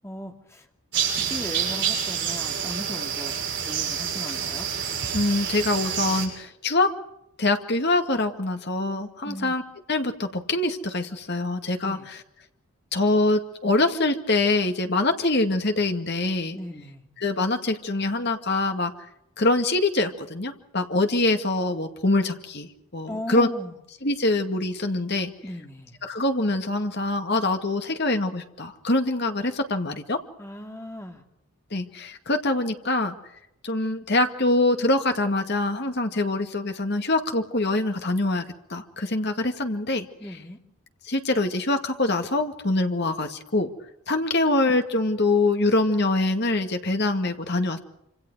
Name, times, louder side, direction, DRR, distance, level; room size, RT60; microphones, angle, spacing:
voice 1, 0.0-0.7 1.1-4.7 9.2-9.6 11.8-12.1 16.5-17.1 23.1-23.8 25.4-25.9 30.4-31.2 40.2-40.6, left 1 dB, 10° left, 3 dB, 2.5 m, -37 dB
sound 1, 0.9-6.3, right 8 dB, 50° right, 7.4 m, -28 dB
voice 2, 5.1-6.9 7.4-9.6 9.9-12.0 12.9-16.6 17.2-18.9 19.4-23.5 24.0-25.3 26.0-30.2 31.7-33.2 33.6-38.4 38.7-40.1 41.0-43.7 44.1-47.8, left 2 dB, 50° left, 6 dB, 2.1 m, -24 dB
27.0 x 26.5 x 4.8 m, 0.80 s
head